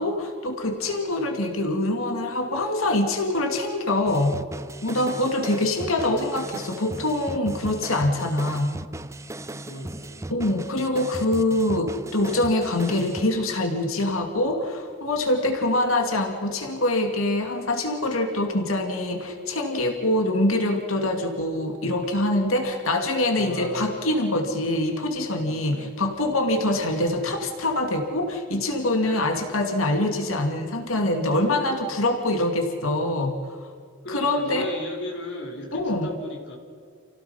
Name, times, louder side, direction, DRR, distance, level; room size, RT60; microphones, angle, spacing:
voice 1, 0.0-4.4 4.8-8.7 10.3-33.4 34.1-34.7 35.7-36.1, left 1 dB, 90° left, 4 dB, 2.4 m, -24 dB
sound 1, 4.1-13.2, right 1 dB, 15° right, 0.6 m, -37 dB
voice 2, 9.7-10.3 23.3-24.1 24.4-24.7 25.4-25.9 29.0-29.6 34.0-36.6, left 1 dB, 60° left, -1 dB, 4.6 m, -37 dB
29.0 x 17.5 x 5.6 m, 2.2 s
head